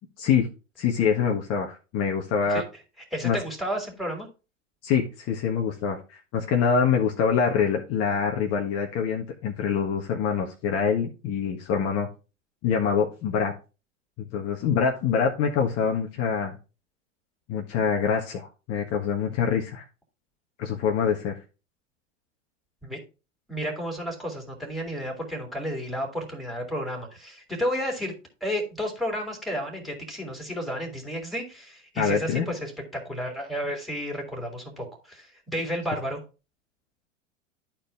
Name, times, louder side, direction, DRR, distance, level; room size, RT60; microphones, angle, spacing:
voice 1, 0.8-2.6 3.2-3.4 4.8-12.1 12.6-13.5 14.2-16.6 17.5-19.8 20.6-21.3 31.9-32.5, left 6 dB, 40° left, 1 dB, 1.6 m, -25 dB
voice 2, 3.1-4.3 22.8-23.0 23.5-28.1 28.4-36.2, equal, ahead, 0 dB, 3.2 m, -32 dB
11.5 x 4.5 x 3.5 m, 0.31 s
hypercardioid pair, 95°, 38 cm